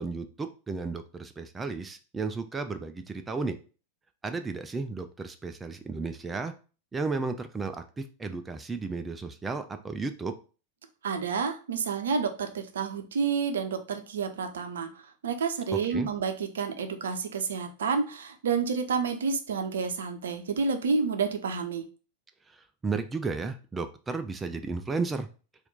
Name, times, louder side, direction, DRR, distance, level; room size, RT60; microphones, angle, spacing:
voice 1, 0.0-3.6 4.2-6.5 6.9-10.3 15.7-16.1 22.5-25.3, right 4 dB, 15° right, 8 dB, 0.3 m, -33 dB
voice 2, 11.0-14.9 15.2-21.8, right 5 dB, 65° right, 7 dB, 0.6 m, -29 dB
4.2 x 2.5 x 4.0 m, 0.36 s
figure-of-eight pair, 90°, 0 cm